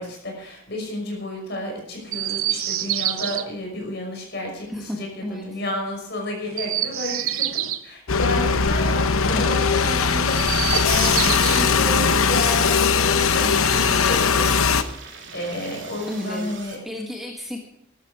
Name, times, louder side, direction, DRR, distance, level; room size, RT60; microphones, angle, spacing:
voice 1, 0.0-10.5 10.8-16.8, left 1 dB, 50° left, 1 dB, 5.9 m, -31 dB
Chirp tweet, 2.1-3.4 6.4-7.9 10.2-11.7 13.1-14.2 15.3-16.2, right 12 dB, 85° right, 0.9 m, -28 dB
voice 2, 4.7-5.5 9.3-9.6 16.1-16.5 16.8-17.7, left 1 dB, ahead, 0 dB, 1.6 m, -32 dB
sound 1, 7.0-7.5 11.2-16.8, right 4 dB, 60° right, 3.2 m, -42 dB
sound 2, 8.1-14.8, left 5 dB, 90° left, 1.0 m, -20 dB
14.0 x 13.0 x 5.0 m, 0.75 s
head